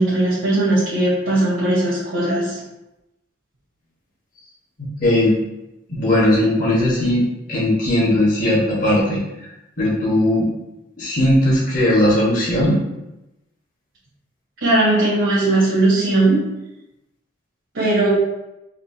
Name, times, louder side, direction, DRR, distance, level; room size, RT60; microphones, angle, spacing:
voice 1, 0.0-2.6 14.6-16.4 17.7-18.1, right 2 dB, 70° right, -9 dB, 1.1 m, -18 dB
voice 2, 4.8-5.3 5.9-7.2 7.5-9.2 9.8-10.5 11.0-12.8, left 1 dB, 45° left, -6 dB, 1.3 m, -18 dB
4.3 x 2.5 x 2.7 m, 0.93 s
head